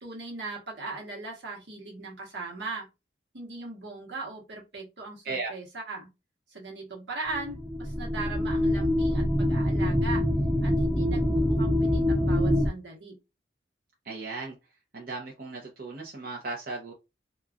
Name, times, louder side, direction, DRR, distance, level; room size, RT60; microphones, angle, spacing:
voice 1, 0.0-2.9 3.3-6.1 6.5-10.2 10.6-13.2, right 3 dB, 75° right, 1.1 m, -39 dB
sound 1, 7.3-12.7, left 1 dB, ahead, 0.3 m, -25 dB
voice 2, 14.0-14.6 14.9-16.9, right 3 dB, 50° right, 0.7 m, -36 dB
2.9 x 2.3 x 2.4 m
head